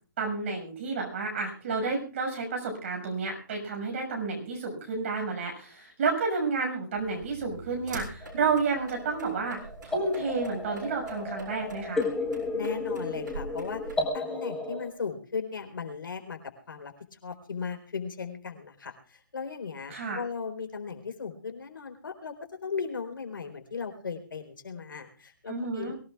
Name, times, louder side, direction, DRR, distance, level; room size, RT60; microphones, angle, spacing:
voice 1, 0.2-9.6 9.8-12.0 19.9-20.2 25.5-25.9, right 4 dB, 35° right, 1 dB, 6.1 m, -30 dB
sound 1, 6.9-14.1, right 3 dB, 65° right, 6.8 m, -45 dB
sound 2, 8.2-14.9, left 3 dB, 5° left, 1.3 m, -34 dB
voice 2, 12.5-16.4 16.7-22.3 22.6-25.9, left 5 dB, 85° left, 6 dB, 4.1 m, -37 dB
23.5 x 17.5 x 2.4 m, 0.39 s
hypercardioid pair, 170°, 11 cm